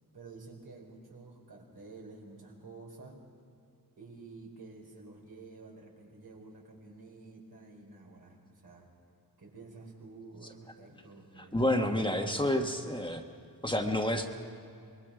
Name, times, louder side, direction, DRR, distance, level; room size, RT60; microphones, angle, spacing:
voice 1, 0.1-3.2 4.0-8.9 9.4-11.6, right 3 dB, 75° right, -1 dB, 4.6 m, -50 dB
voice 2, 11.4-13.2 13.6-14.3, left 1 dB, 15° left, 3 dB, 1.4 m, -29 dB
25.0 x 21.5 x 5.0 m, 2.5 s
wide cardioid pair, 95°, 37 cm